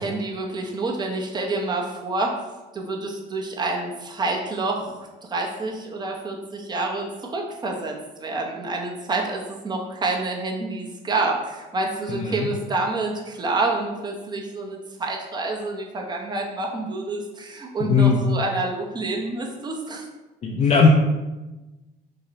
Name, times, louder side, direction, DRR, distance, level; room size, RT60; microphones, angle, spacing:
voice 1, 0.0-2.3 2.7-20.0, right 2 dB, 25° right, 0 dB, 0.8 m, -28 dB
voice 2, 12.1-12.5 17.8-18.2 20.4-20.9, left 6 dB, 45° left, -1 dB, 0.5 m, -18 dB
5.3 x 2.2 x 4.0 m, 1.1 s
cardioid pair, 110°, 17 cm